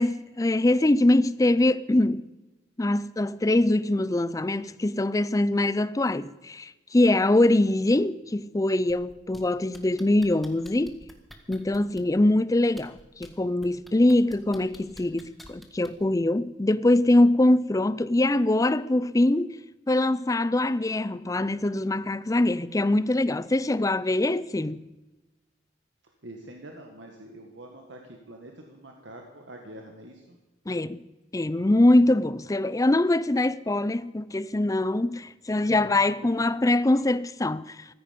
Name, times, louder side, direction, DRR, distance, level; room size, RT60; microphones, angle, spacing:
voice 1, 0.0-2.2 2.8-11.0 11.5-19.5 19.9-24.9 30.7-31.0 31.3-37.8, left 1 dB, 20° left, 0.5 m, -23 dB
sound 1, 8.9-9.4 9.7-12.2 12.7-13.3 13.6-16.1 17.1-17.2, equal, ahead, 1.7 m, -48 dB
voice 2, 26.0-30.4 35.6-35.9, right 1 dB, 70° right, 1.8 m, -45 dB
15.5 x 14.0 x 5.3 m
head